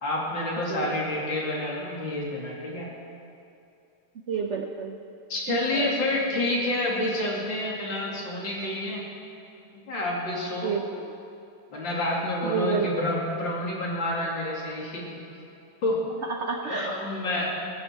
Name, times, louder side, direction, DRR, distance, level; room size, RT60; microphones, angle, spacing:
voice 1, 0.0-2.9 5.3-9.0 9.7-10.7 11.7-15.1 15.8-16.0 16.6-17.6, left 1 dB, 65° left, -3 dB, 3.1 m, -28 dB
voice 2, 4.3-5.0 5.5-5.9 10.6-10.8 12.4-12.9 16.3-16.9, right 6 dB, 85° right, 3 dB, 0.6 m, -29 dB
17.5 x 13.5 x 4.5 m, 2.8 s
omnidirectional pair, 2.2 m